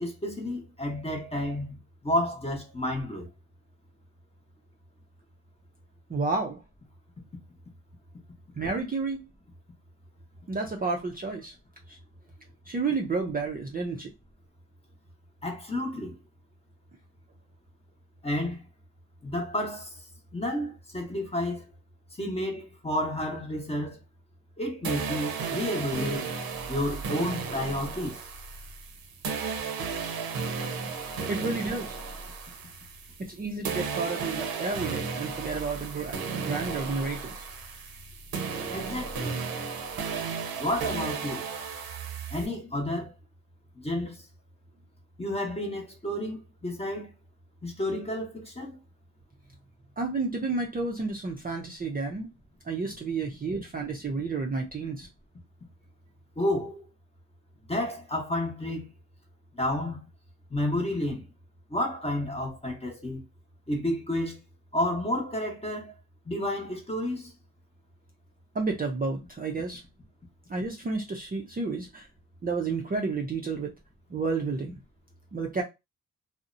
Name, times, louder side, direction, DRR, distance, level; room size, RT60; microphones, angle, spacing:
voice 1, 0.0-1.8 2.0-3.3 15.4-16.2 18.2-18.6 19.2-20.0 20.3-21.7 22.2-24.0 24.6-26.2 26.7-28.2 38.7-39.4 40.6-41.5 42.3-43.1 43.8-44.2 45.2-47.1 47.6-48.8 56.4-56.9 57.7-58.9 59.5-60.0 60.5-61.2 61.7-63.2 63.7-64.4 64.7-65.9 66.3-67.3, left 1 dB, 15° left, 0.7 m, -31 dB
voice 2, 6.1-6.6 8.6-9.3 10.5-11.5 11.9-12.0 12.7-14.1 31.3-31.9 33.2-37.5 50.0-52.3 52.6-55.1 68.5-69.8 70.5-72.1 72.4-73.7 74.1-74.8 75.3-75.6, right 3 dB, 25° right, 0.4 m, -31 dB
sound 1, 24.8-33.4 33.6-42.5, right 5 dB, 85° right, 0.7 m, -34 dB
2.7 x 2.0 x 2.5 m
wide cardioid pair, 125°, 35 cm